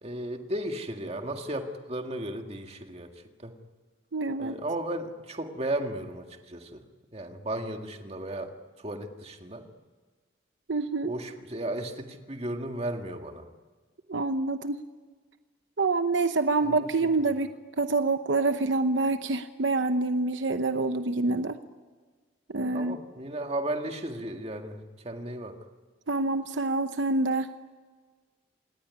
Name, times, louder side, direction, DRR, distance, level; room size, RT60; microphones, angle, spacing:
voice 1, 0.0-3.1 3.4-3.5 4.4-6.8 7.1-9.6 11.1-13.5 16.6-16.9 22.7-25.6, right 1 dB, 30° right, 5 dB, 1.9 m, -35 dB
voice 2, 4.1-4.6 10.7-11.1 14.1-14.8 15.8-21.6 22.5-23.0 26.1-27.5, right 3 dB, 70° right, 9 dB, 0.9 m, -27 dB
27.5 x 19.0 x 9.6 m, 1.4 s
head